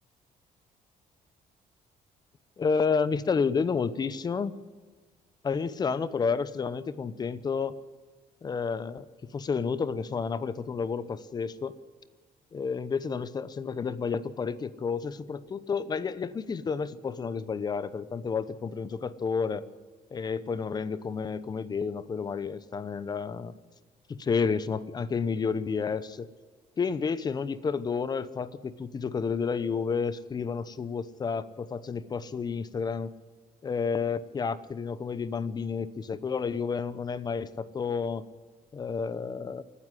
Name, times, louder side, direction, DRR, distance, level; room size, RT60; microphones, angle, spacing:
voice 1, 2.6-4.5 5.4-7.8 8.4-9.1 9.3-11.7 12.5-19.6 20.1-23.5 24.1-26.3 26.8-33.1 33.6-38.2 38.7-39.6, left 5 dB, 30° left, 16 dB, 0.8 m, -30 dB
26.5 x 9.9 x 9.8 m, 1.4 s
cardioid pair, 140°, 15 cm